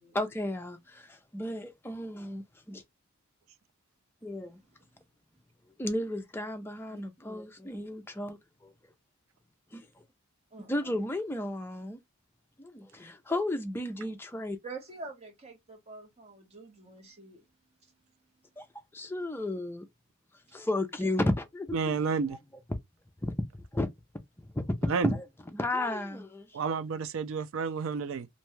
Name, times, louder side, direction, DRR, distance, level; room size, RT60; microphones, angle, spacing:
voice 1, 0.1-2.8 4.2-4.6 5.8-8.7 9.7-9.9 10.7-12.0 12.6-14.6 18.6-18.7 18.9-19.9 20.5-22.0 23.2-23.5 23.7-23.9 24.4-24.6 25.0-25.3 25.5-26.6, left 1 dB, 10° left, 0.4 m, -33 dB
voice 2, 10.5-11.0 14.6-17.4, right 3 dB, 30° right, 0.8 m, -46 dB
voice 3, 21.7-22.4 24.9-25.1 26.5-28.3, right 5 dB, 65° right, 0.3 m, -30 dB
2.6 x 2.2 x 3.0 m
head